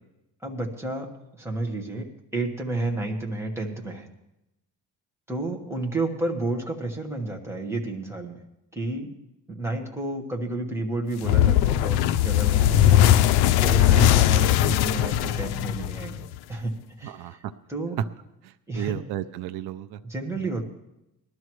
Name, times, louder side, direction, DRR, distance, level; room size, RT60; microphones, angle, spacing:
voice 1, 0.4-1.1 1.3-4.1 5.3-8.4 8.7-9.1 9.5-13.0 13.3-16.7 17.0-17.4 17.7-18.0 18.7-18.9 20.0-20.6, right 2 dB, 5° right, 1 dB, 1.5 m, -31 dB
sound 1, 11.2-16.4, left 12 dB, 80° left, 0.5 m, -19 dB
voice 2, 17.0-17.5 18.4-20.0 20.4-20.5, right 12 dB, 90° right, 11 dB, 0.6 m, -34 dB
20.0 x 12.5 x 3.1 m, 0.89 s
cardioid pair, 165°, 37 cm